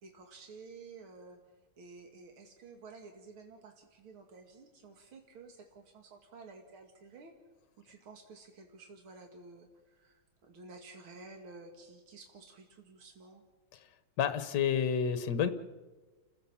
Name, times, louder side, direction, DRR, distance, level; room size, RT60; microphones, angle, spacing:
voice 1, 0.0-1.4 1.8-7.3 7.8-13.4, right 3 dB, 85° right, 3 dB, 2.6 m, -52 dB
voice 2, 14.2-15.5, left 7 dB, 60° left, 11 dB, 1.7 m, -30 dB
30.0 x 16.0 x 7.2 m, 1.3 s
omnidirectional pair, 2.2 m